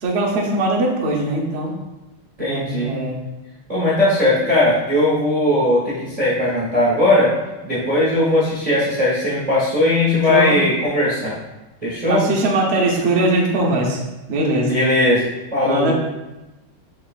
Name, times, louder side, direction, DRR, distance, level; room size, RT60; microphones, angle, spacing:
voice 1, 0.0-1.7 2.4-3.2 10.3-10.6 12.1-14.0 14.3-14.7 15.6-15.9, right 2 dB, 65° right, -2 dB, 0.6 m, -20 dB
voice 2, 2.4-2.9 3.7-7.3 7.6-11.4 11.8-12.2 14.7-15.9, left 1 dB, 30° right, -9 dB, 0.8 m, -18 dB
6.5 x 3.2 x 2.4 m, 1.0 s
omnidirectional pair, 2.4 m